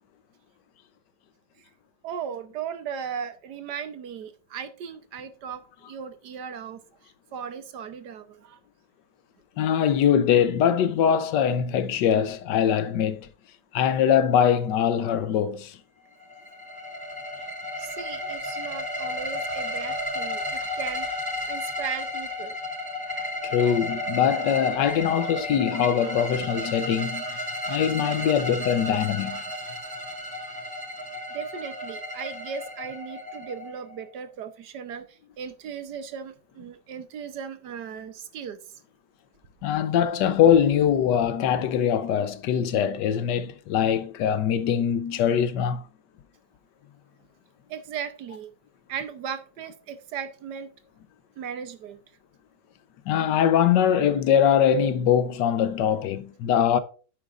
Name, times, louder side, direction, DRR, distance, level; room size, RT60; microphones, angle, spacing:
voice 1, 2.0-8.6 17.8-21.1 21.5-22.6 31.3-38.7 47.7-48.5 48.9-50.7 51.4-52.0, right 7 dB, 70° right, 1.4 m, -37 dB
voice 2, 9.6-13.3 13.7-15.8 23.4-27.2 27.7-29.4 39.6-45.8 53.1-56.8, left 8 dB, 75° left, 1.3 m, -22 dB
sound 1, 16.2-34.0, left 1 dB, 15° right, 0.9 m, -33 dB
9.4 x 8.6 x 2.5 m
omnidirectional pair, 2.0 m